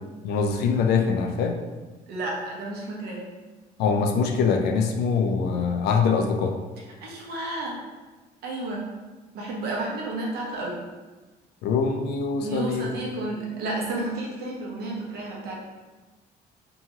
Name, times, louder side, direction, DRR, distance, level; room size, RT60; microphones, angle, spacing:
voice 1, 0.2-1.6 3.8-6.6 11.6-12.9, left 5 dB, 75° left, 4 dB, 0.4 m, -23 dB
voice 2, 2.1-3.2 7.0-7.8 8.4-8.9 9.3-10.8 12.4-15.5, right 2 dB, 70° right, -3 dB, 0.8 m, -31 dB
2.8 x 2.3 x 2.8 m, 1.2 s
cardioid pair, 110°, 17 cm